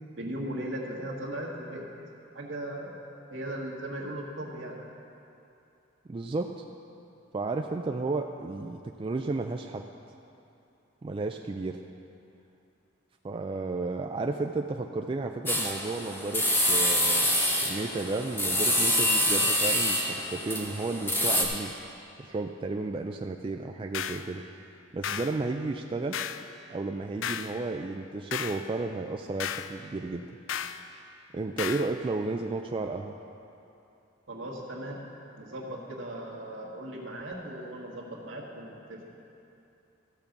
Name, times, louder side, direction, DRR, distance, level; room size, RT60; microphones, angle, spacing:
voice 1, 0.1-1.9 2.3-2.9 3.3-4.8 34.3-35.0 35.4-39.2, right 1 dB, 70° right, -2 dB, 1.6 m, -37 dB
voice 2, 6.1-6.5 7.3-9.8 11.0-11.8 13.2-21.7 22.2-24.6 24.9-26.2 26.7-30.3 31.3-33.1, right 3 dB, 25° right, 4 dB, 0.3 m, -33 dB
sound 1, 15.5-21.4, left 1 dB, 10° left, 1.1 m, -26 dB
sound 2, 23.9-24.3 25.0-25.4 26.1-26.5 27.2-27.5 28.3-28.6 29.4-29.7 30.5-30.8 31.6-31.9, left 9 dB, 70° left, 0.4 m, -33 dB
14.0 x 5.2 x 7.1 m, 2.7 s
head